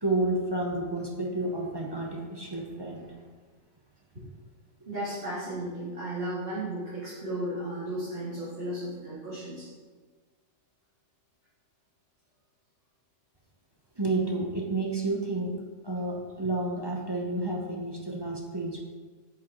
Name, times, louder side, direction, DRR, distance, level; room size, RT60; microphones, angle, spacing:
voice 1, 0.0-3.0 14.0-15.5 15.8-18.8, right 2 dB, 20° right, -1 dB, 0.7 m, -30 dB
voice 2, 4.9-9.7, right 1 dB, 40° right, -13 dB, 2.7 m, -34 dB
8.7 x 6.4 x 3.1 m, 1.4 s
omnidirectional pair, 1.5 m